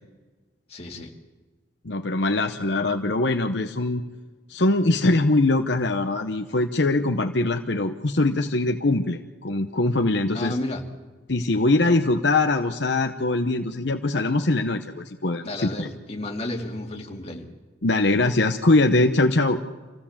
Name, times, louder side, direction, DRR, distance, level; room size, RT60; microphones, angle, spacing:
voice 1, 0.7-1.1 10.3-10.8 11.8-12.0 15.4-17.5, left 1 dB, 35° left, 0 dB, 2.5 m, -32 dB
voice 2, 1.8-4.0 4.5-10.6 11.3-15.9 17.8-19.6, left 2 dB, 65° left, 5 dB, 0.9 m, -22 dB
26.0 x 16.0 x 7.3 m, 1.3 s
head